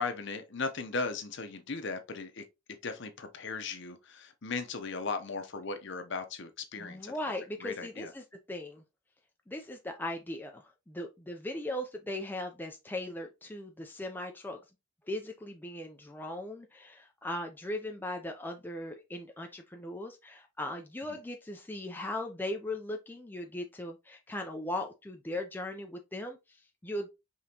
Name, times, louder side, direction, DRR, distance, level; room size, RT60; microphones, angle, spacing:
voice 1, 0.0-7.1 7.6-8.1 21.1-21.2, left 4 dB, 55° left, 0.7 m, -37 dB
voice 2, 6.8-8.8 9.5-14.6 15.1-27.1, left 1 dB, 10° left, 0.4 m, -38 dB
5.2 x 3.5 x 2.8 m
head